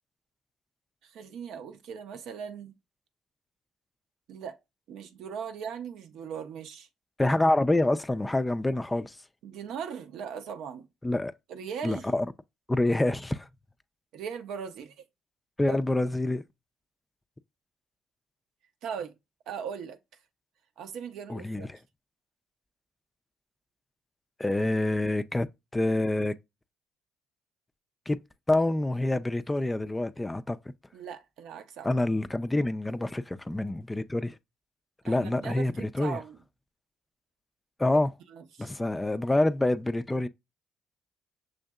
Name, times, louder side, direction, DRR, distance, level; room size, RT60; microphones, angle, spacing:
voice 1, 1.0-2.8 4.3-4.6 4.9-6.9 9.4-10.9 11.5-12.1 14.1-14.9 15.7-15.8 18.8-19.1 19.5-20.0 20.8-21.7 30.9-31.9 35.1-36.4 38.3-38.8, right 7 dB, 70° right, 0.6 m, -39 dB
voice 2, 7.2-9.2 11.0-11.3 11.8-12.3 12.7-13.5 15.6-16.4 21.3-21.7 24.4-25.5 25.7-26.3 28.1-28.2 28.5-30.6 31.8-34.4 35.0-36.2 37.8-38.1 38.6-40.3, left 2 dB, 15° left, 0.3 m, -26 dB
6.2 x 2.6 x 2.3 m
hypercardioid pair, 55°, 0 cm